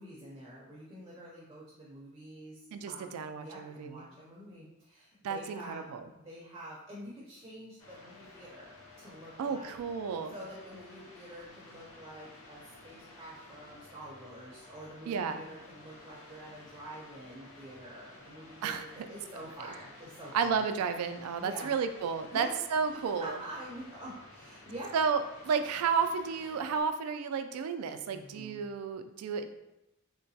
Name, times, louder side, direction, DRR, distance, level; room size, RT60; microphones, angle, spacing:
voice 1, 0.0-2.6 2.8-5.9 6.2-9.8 10.3-20.6 21.4-21.7 22.3-22.6 22.9-24.9 28.1-28.6, right 1 dB, 20° right, -5 dB, 0.6 m, -47 dB
voice 2, 2.7-4.0 5.2-6.0 9.4-10.3 15.1-15.4 18.6-19.0 20.3-23.4 24.9-29.5, right 6 dB, 85° right, 12 dB, 0.3 m, -32 dB
sound 1, 7.8-26.8, left 2 dB, 70° left, 0.6 m, -54 dB
3.8 x 2.2 x 2.7 m, 0.91 s
head